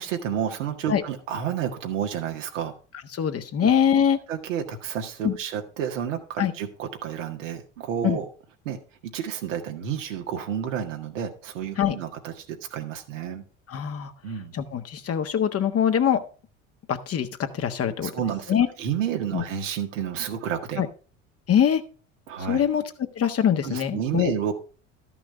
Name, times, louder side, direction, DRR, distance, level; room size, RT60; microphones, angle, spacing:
voice 1, 0.0-2.7 3.6-3.7 4.3-8.3 8.6-8.8 9.1-13.4 14.2-14.5 18.0-20.8 22.3-22.6 23.6-24.6, right 8 dB, 80° right, 3 dB, 1.8 m, -30 dB
voice 2, 3.1-4.2 5.2-5.4 6.4-6.5 8.0-8.2 11.8-12.0 13.7-14.1 14.5-16.2 16.9-18.1 18.5-18.7 19.3-19.4 20.8-20.9 21.5-21.8 22.5-22.8 23.1-24.3, left 9 dB, 40° left, 7 dB, 1.4 m, -23 dB
13.0 x 6.0 x 4.4 m, 0.38 s
hypercardioid pair, 65°, 37 cm